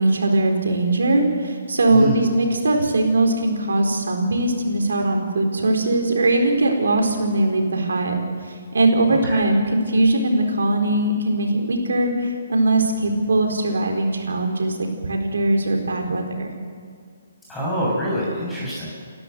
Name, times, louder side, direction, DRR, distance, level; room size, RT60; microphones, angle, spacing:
voice 1, 0.0-16.5, right 2 dB, 75° right, 3 dB, 4.4 m, -20 dB
voice 2, 1.9-2.2 9.3-9.4 17.5-18.9, equal, 5° left, -7 dB, 6.9 m, -25 dB
29.0 x 12.5 x 8.1 m, 2.2 s
figure-of-eight pair, 140°, 0 cm